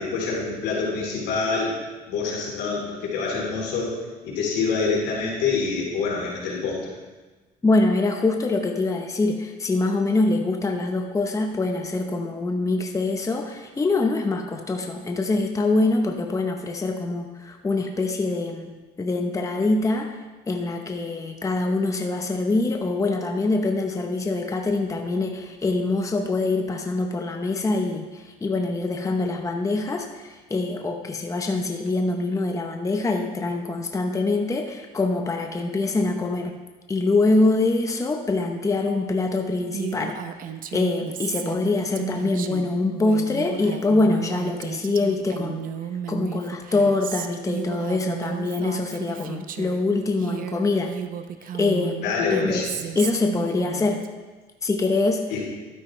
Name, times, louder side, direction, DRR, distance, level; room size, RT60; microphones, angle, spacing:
voice 1, 0.0-1.7 2.1-3.9 4.2-6.8 52.0-52.8 55.3-55.4, left 4 dB, 90° left, -4 dB, 3.6 m, -26 dB
voice 2, 7.6-20.2 20.5-36.6 36.9-40.2 40.7-45.7 46.1-50.9 51.5-52.1 52.3-52.7 52.9-54.0 54.6-55.2, left 2 dB, 20° left, 4 dB, 0.9 m, -24 dB
Female speech woman speaking, 39.7-49.8 50.2-54.1, right 8 dB, 55° right, 0.7 m, -34 dB
12.0 x 9.7 x 3.3 m, 1.3 s
cardioid pair, 110°, 17 cm